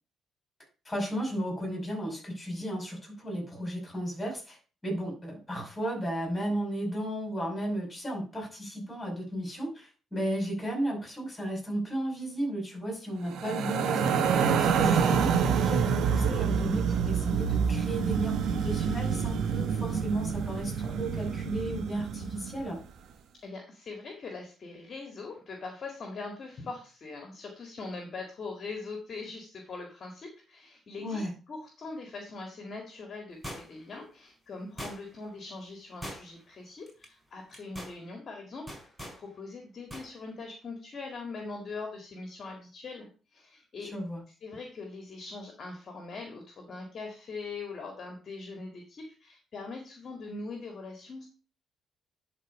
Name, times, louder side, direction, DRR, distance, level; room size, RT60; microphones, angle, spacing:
voice 1, 0.9-4.6 4.8-14.1 14.5-22.8 31.0-31.3 43.8-44.2, right 1 dB, 20° left, 1 dB, 5.7 m, -34 dB
sound 1, 13.3-22.6, right 6 dB, 75° right, 1.3 m, -27 dB
voice 2, 23.4-43.9 44.4-51.3, left 3 dB, 50° left, 2 dB, 1.9 m, -42 dB
sound 2, 33.4-33.9 34.8-35.3 36.0-36.5 36.9-37.1 37.5-38.0 38.7-39.2 39.9-40.1 40.4-40.5, equal, 5° right, 4.5 m, -41 dB
11.0 x 4.1 x 5.3 m, 0.36 s
cardioid pair, 90°, 0 cm